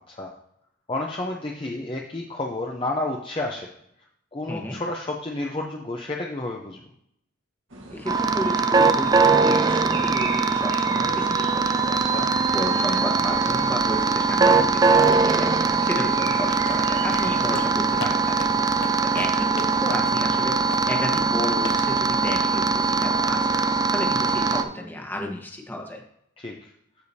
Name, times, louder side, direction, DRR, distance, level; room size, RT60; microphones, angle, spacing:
voice 1, 0.9-3.7 4.3-6.8 11.9-12.3 17.3-17.5 18.5-18.9 26.4-26.7, left 2 dB, 25° left, 0 dB, 0.7 m, -31 dB
sound 1, 7.7-17.5, right 3 dB, 65° right, 1.6 m, -40 dB
voice 2, 7.9-11.9 12.5-18.7 19.1-23.6 23.9-26.0, left 1 dB, 10° left, 2 dB, 1.2 m, -32 dB
sound 2, 8.1-24.6, right 4 dB, 20° right, 0.3 m, -21 dB
sound 3, 16.4-19.8 20.0-20.3 20.7-21.0 21.6-21.9, left 3 dB, 75° left, 0.9 m, -37 dB
14.0 x 4.9 x 2.7 m, 0.74 s
head